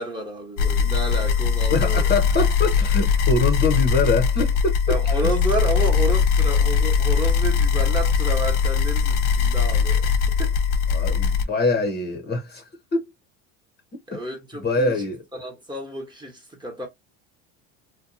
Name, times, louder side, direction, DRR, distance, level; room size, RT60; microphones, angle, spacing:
voice 1, 0.0-2.1 4.9-10.5 14.1-16.9, right 1 dB, 10° right, 1.0 m, -31 dB
sound 1, 0.6-11.4, left 6 dB, 80° left, 0.7 m, -20 dB
voice 2, 1.7-5.3 10.9-12.6 12.9-13.0 14.1-14.2 14.5-15.2, left 3 dB, 25° left, 0.8 m, -24 dB
2.7 x 2.2 x 2.6 m
supercardioid pair, 105°, 36 cm